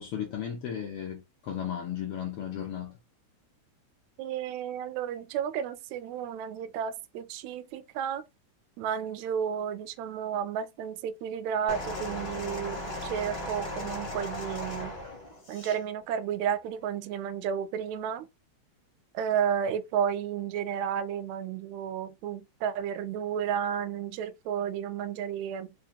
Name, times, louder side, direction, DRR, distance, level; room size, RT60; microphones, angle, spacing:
voice 1, 0.0-3.0, left 9 dB, 85° left, 1.2 m, -35 dB
voice 2, 4.2-8.2 8.8-15.0 15.5-18.3 19.1-25.7, right 8 dB, 80° right, 1.7 m, -32 dB
sound 1, 11.7-15.8 16.7-16.8, left 1 dB, 40° left, 0.6 m, -37 dB
4.4 x 2.5 x 2.8 m
omnidirectional pair, 3.3 m